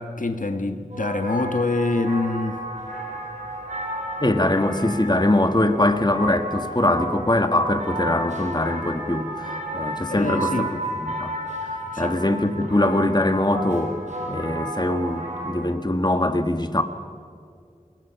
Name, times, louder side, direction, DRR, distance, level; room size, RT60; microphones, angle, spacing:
voice 1, 0.0-2.6 10.1-10.7 11.9-12.1, left 2 dB, 70° left, 7 dB, 1.4 m, -25 dB
sound 1, 0.9-15.6, right 1 dB, 60° right, 5.2 m, -32 dB
voice 2, 4.2-11.3 12.0-13.9 14.3-16.8, left 1 dB, 30° left, 7 dB, 1.7 m, -22 dB
27.0 x 21.5 x 5.9 m, 2.2 s
wide cardioid pair, 40°, 14 cm